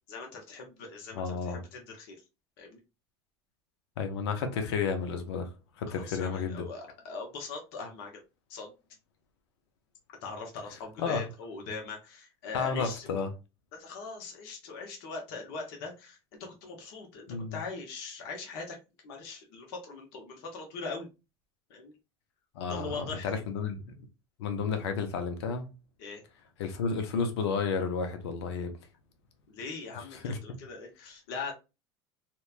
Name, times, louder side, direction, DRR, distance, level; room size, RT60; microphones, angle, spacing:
voice 1, 0.1-2.2 2.6-2.8 5.9-8.2 8.5-8.7 10.2-13.1 13.7-17.3 17.5-18.8 19.0-21.1 21.7-21.9 22.7-23.4 26.0-26.2 29.5-31.5, left 4 dB, 70° left, 0.9 m, -41 dB
voice 2, 1.2-1.6 4.0-5.5 5.8-6.7 11.0-11.2 12.5-13.3 17.3-17.6 22.5-23.9 24.4-25.7 26.6-28.7 30.0-30.4, left 5 dB, 85° left, 0.6 m, -32 dB
2.9 x 2.2 x 2.4 m
supercardioid pair, 100°, 14 cm